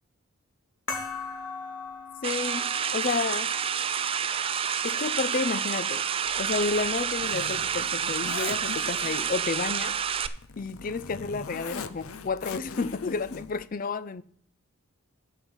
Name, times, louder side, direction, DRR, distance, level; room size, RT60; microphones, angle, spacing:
sound 1, 0.9-6.0, left 4 dB, 65° left, 2.2 m, -41 dB
voice 1, 2.2-3.5 4.8-6.0 6.4-10.0 10.6-14.2, left 4 dB, 40° left, 0.4 m, -31 dB
sound 2, 2.2-10.3, right 8 dB, 25° right, 0.4 m, -29 dB
Zipper (clothing), 6.3-13.6, left 5 dB, 85° left, 0.7 m, -42 dB
8.1 x 5.6 x 7.8 m
head